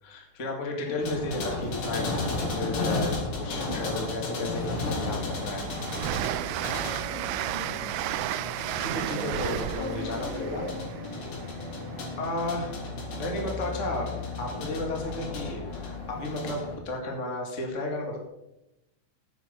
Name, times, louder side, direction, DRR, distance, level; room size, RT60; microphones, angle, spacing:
voice 1, 0.0-5.6 8.8-10.6 12.2-12.7 13.1-14.1 14.4-18.2, left 2 dB, 30° left, 1 dB, 1.8 m, -33 dB
sound 1, 1.0-16.8, left 2 dB, 85° left, 4.3 m, -34 dB
voice 2, 3.5-3.8 4.8-4.9 7.1-7.9 9.8-11.3, left 3 dB, 65° left, -3 dB, 4.9 m, -39 dB
Train, 4.4-12.1, right 13 dB, 80° right, 1.8 m, -33 dB
Chink clink, 6.8-11.0, right 7 dB, 25° right, 3.1 m, -50 dB
10.0 x 8.2 x 6.8 m, 0.91 s
omnidirectional pair, 3.8 m